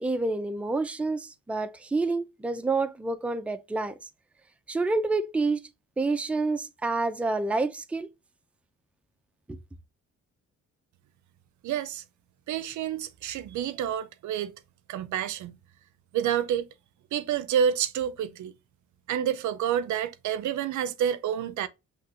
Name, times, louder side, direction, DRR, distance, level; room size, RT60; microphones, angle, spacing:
voice 1, 0.0-4.1 4.7-5.6 6.0-8.1 9.5-9.6, right 3 dB, 5° right, 0.4 m, -28 dB
voice 2, 11.6-12.0 12.5-14.5 14.9-15.6 16.1-16.7 17.1-18.5 19.1-21.7, right 9 dB, 70° right, 0.5 m, -28 dB
5.8 x 3.0 x 2.5 m
cardioid pair, 90°, 30 cm